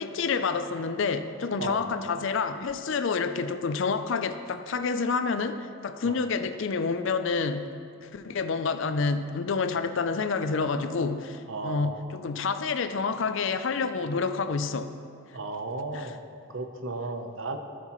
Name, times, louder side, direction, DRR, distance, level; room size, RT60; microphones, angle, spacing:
voice 1, 0.0-7.7 8.0-14.9 15.9-16.1, left 4 dB, 55° left, 10 dB, 0.4 m, -28 dB
voice 2, 11.5-12.1 15.3-16.2 16.5-17.6, right 3 dB, 60° right, 6 dB, 0.8 m, -34 dB
13.0 x 9.6 x 3.1 m, 2.4 s
head